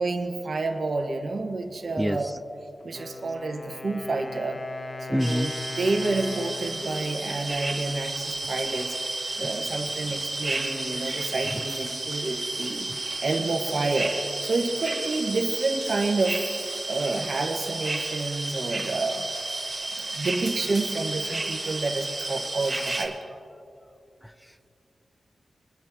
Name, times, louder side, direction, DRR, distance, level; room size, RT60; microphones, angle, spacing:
voice 1, 0.0-2.3 2.8-4.6 5.0-5.5 5.8-8.9 9.4-12.9 13.2-14.1 14.4-16.4 16.9-19.2 19.9-23.2, right 3 dB, 50° right, 4 dB, 1.1 m, -29 dB
voice 2, 2.0-2.4 5.1-5.5 11.5-11.7 12.2-12.3 12.9-13.0 24.2-24.7, equal, ahead, 13 dB, 0.3 m, -29 dB
Wind instrument woodwind instrument, 2.8-8.6, left 2 dB, 30° left, 0.7 m, -39 dB
sound 1, 5.2-23.1, right 2 dB, 20° right, 1.5 m, -32 dB
22.0 x 10.5 x 2.7 m, 2.6 s
wide cardioid pair, 165°, 0 cm